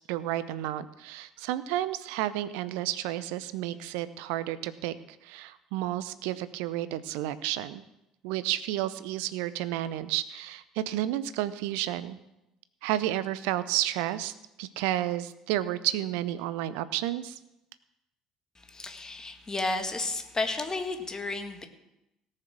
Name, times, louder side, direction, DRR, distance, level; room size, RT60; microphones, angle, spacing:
voice 1, 0.1-4.9 5.2-7.8 8.2-12.2 12.8-17.4, right 13 dB, 65° right, 15 dB, 0.7 m, -31 dB
voice 2, 18.6-21.7, left 3 dB, 20° left, 6 dB, 1.9 m, -32 dB
17.5 x 6.7 x 6.1 m, 0.91 s
figure-of-eight pair, 55°, 3 cm